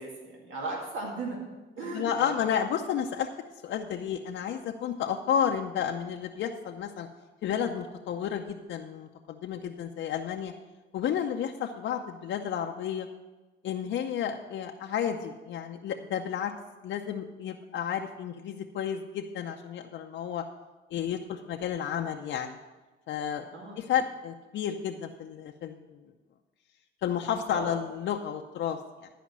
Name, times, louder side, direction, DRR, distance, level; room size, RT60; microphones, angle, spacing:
voice 1, 0.0-1.4 1.8-2.5 23.5-23.8 27.5-27.7, right 3 dB, 75° right, -1 dB, 2.1 m, -36 dB
voice 2, 1.8-3.3 3.6-7.1 7.4-10.5 10.9-13.1 13.6-16.5 16.8-20.4 20.9-22.6 23.1-23.5 23.8-26.0 27.0-29.1, left 8 dB, 70° left, 2 dB, 0.6 m, -31 dB
11.5 x 5.0 x 7.4 m, 1.2 s
cardioid pair, 90°, 20 cm